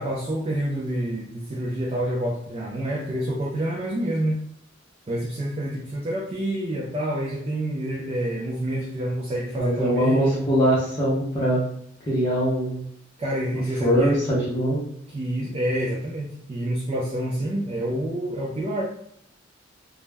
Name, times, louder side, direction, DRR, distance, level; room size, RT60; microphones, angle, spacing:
voice 1, 0.0-4.4 5.1-10.4 13.2-14.1 15.1-18.8, right 1 dB, 30° right, -2 dB, 0.3 m, -28 dB
voice 2, 9.6-11.6 12.1-12.8 13.8-14.8, equal, 25° left, -8 dB, 0.6 m, -22 dB
2.2 x 2.0 x 3.2 m, 0.70 s
head